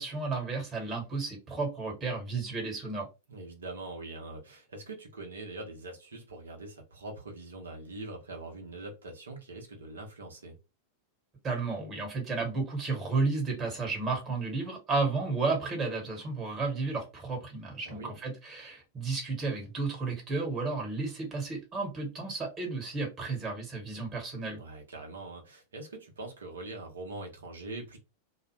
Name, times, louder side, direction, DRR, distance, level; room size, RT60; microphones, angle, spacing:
voice 1, 0.0-3.1 11.4-24.6, right 3 dB, 25° right, 1.2 m, -32 dB
voice 2, 3.3-10.6 17.8-18.2 24.5-28.0, right 2 dB, 70° right, 0.8 m, -43 dB
2.3 x 2.1 x 3.1 m
figure-of-eight pair, 90°, 0 cm